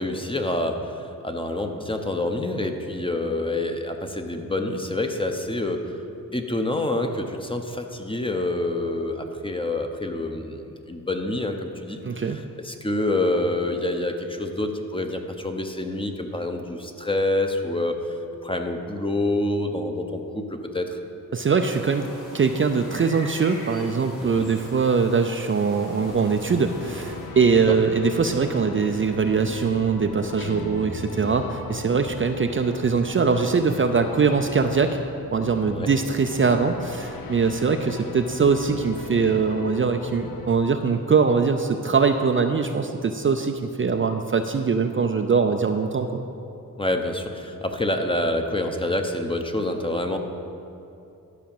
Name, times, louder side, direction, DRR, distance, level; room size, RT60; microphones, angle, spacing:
voice 1, 0.0-6.0 6.3-12.3 12.6-18.0 18.4-21.0 24.2-24.5 27.7-27.8 35.7-35.9 46.8-50.2, left 1 dB, 15° left, 4 dB, 0.9 m, -27 dB
voice 2, 12.0-12.4 21.3-22.1 22.3-35.0 35.3-46.2, right 5 dB, 35° right, 6 dB, 0.5 m, -22 dB
sound 1, 21.7-27.3, left 1 dB, 65° left, 2.2 m, -42 dB
sound 2, 25.9-40.5, left 5 dB, 85° left, 0.7 m, -38 dB
Guitar, 30.4-32.4, equal, 35° left, 1.4 m, -39 dB
11.5 x 4.9 x 7.2 m, 2.7 s
cardioid pair, 75°, 35 cm